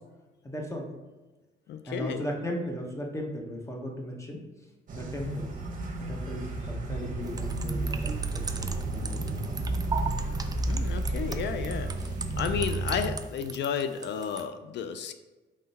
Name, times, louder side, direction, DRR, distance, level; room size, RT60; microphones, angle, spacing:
voice 1, 0.4-0.9 1.9-4.5 4.9-5.5 6.0-9.6, equal, 15° left, 1 dB, 0.9 m, -36 dB
voice 2, 1.7-2.2 10.7-11.9 12.4-15.1, left 7 dB, 60° left, 9 dB, 0.4 m, -32 dB
sound 1, 4.9-13.1, right 2 dB, 45° right, 0.8 m, -32 dB
sound 2, 7.3-14.4, right 5 dB, 20° right, 0.3 m, -38 dB
3.7 x 3.2 x 4.1 m, 1.2 s
cardioid pair, 90°, 20 cm